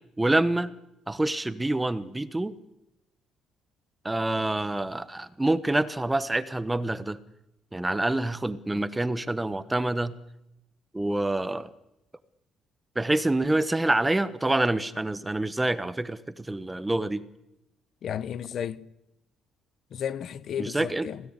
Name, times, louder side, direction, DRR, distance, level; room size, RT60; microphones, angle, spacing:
voice 1, 0.2-0.7 1.1-2.5 4.0-7.2 7.7-10.1 10.9-11.7 12.9-17.2 20.6-21.1, right 2 dB, 10° right, 1.1 m, -26 dB
voice 2, 18.0-18.8 19.9-21.2, left 9 dB, 50° left, 1.0 m, -33 dB
27.0 x 17.5 x 9.7 m
cardioid pair, 140°, 0 cm